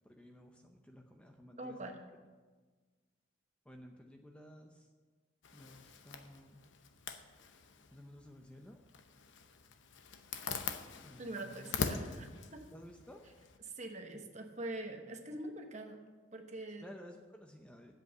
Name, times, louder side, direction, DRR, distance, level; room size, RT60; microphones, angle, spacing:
voice 1, 0.0-2.0 3.6-4.9 5.5-6.6 7.9-8.8 11.0-11.8 12.7-13.2 16.8-17.9, equal, 5° left, 3 dB, 0.6 m, -54 dB
voice 2, 1.6-2.0 11.2-12.6 13.8-16.0 16.3-16.9, right 1 dB, 35° right, 4 dB, 1.0 m, -44 dB
Zipper (clothing), 5.4-13.6, left 5 dB, 70° left, 0.8 m, -43 dB
8.2 x 7.8 x 7.9 m, 1.4 s
head